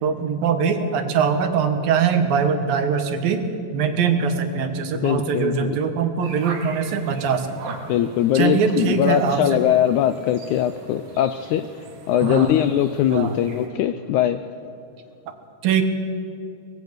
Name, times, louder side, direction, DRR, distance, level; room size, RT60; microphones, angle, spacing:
voice 1, 0.0-3.4 3.7-7.8 8.4-9.6 12.2-12.5 13.1-13.4 15.6-15.8, right 6 dB, 80° right, 7 dB, 3.3 m, -22 dB
voice 2, 4.9-5.8 7.9-14.4, left 11 dB, 80° left, 11 dB, 1.7 m, -21 dB
sound 1, 6.2-13.7, right 4 dB, 55° right, 3.1 m, -41 dB
24.5 x 20.5 x 6.6 m, 2.6 s
omnidirectional pair, 4.1 m